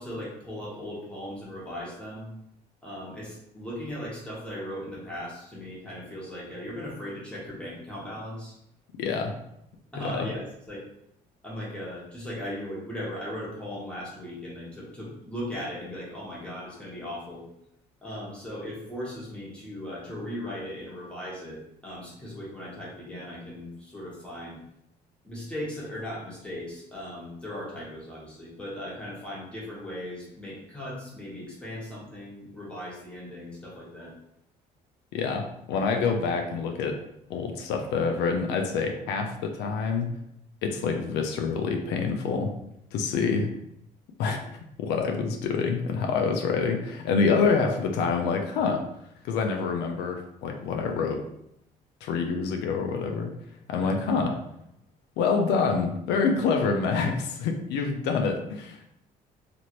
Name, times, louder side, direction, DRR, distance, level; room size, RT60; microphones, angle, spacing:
voice 1, 0.0-2.3 2.8-8.5 9.9-10.8 11.4-17.5 18.0-24.6 25.2-34.1 53.7-53.9, left 1 dB, 5° left, -6 dB, 1.2 m, -38 dB
voice 2, 9.0-9.4 10.1-10.3 35.1-37.0 37.3-40.1 40.6-42.5 42.9-43.5 44.2-44.4 44.8-48.8 49.2-51.2 52.0-53.3 53.7-54.4 55.2-58.9, left 5 dB, 85° left, 4 dB, 0.4 m, -26 dB
2.8 x 2.5 x 3.0 m, 0.77 s
cardioid pair, 110°, 17 cm